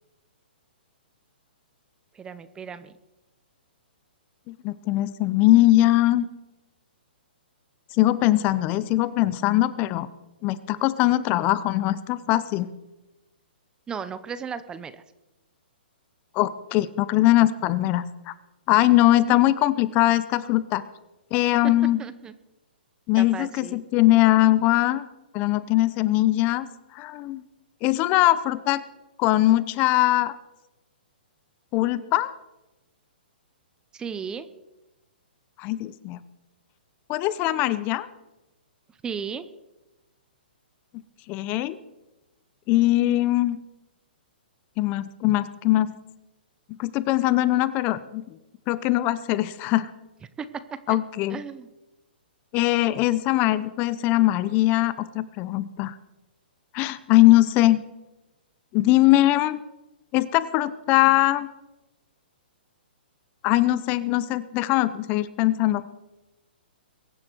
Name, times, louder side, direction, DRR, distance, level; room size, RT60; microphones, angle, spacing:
voice 1, 2.1-2.9 13.9-15.0 21.6-21.7 22.0-22.3 23.2-23.8 33.9-34.5 39.0-39.5 50.4-51.0 51.3-51.7, right 6 dB, 15° right, 14 dB, 0.7 m, -35 dB
voice 2, 4.5-6.2 8.0-10.1 10.4-12.7 16.3-18.3 18.7-20.8 21.3-22.0 23.1-25.0 25.3-26.7 26.9-27.4 27.8-28.8 29.2-30.3 31.7-32.3 35.6-36.2 37.1-38.1 41.3-41.8 42.7-43.6 44.8-46.0 46.8-48.2 48.7-49.9 50.9-51.4 52.5-55.9 56.7-57.8 58.7-59.6 60.1-61.5 63.4-65.9, left 16 dB, 30° left, 16 dB, 0.7 m, -21 dB
22.5 x 9.6 x 4.6 m, 1.0 s
hypercardioid pair, 135°, 6 cm